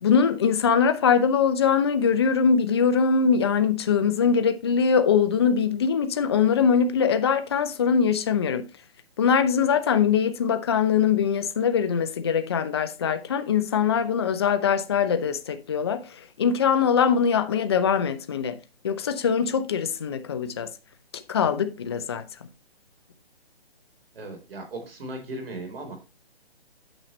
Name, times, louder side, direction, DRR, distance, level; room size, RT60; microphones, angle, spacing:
voice 1, 0.0-8.7 9.2-18.6 18.8-20.7 21.1-22.3, left 6 dB, 25° left, 0.4 m, -22 dB
voice 2, 24.1-26.0, right 1 dB, 65° right, 4.0 m, -37 dB
8.8 x 6.2 x 3.1 m
hypercardioid pair, 155°, 32 cm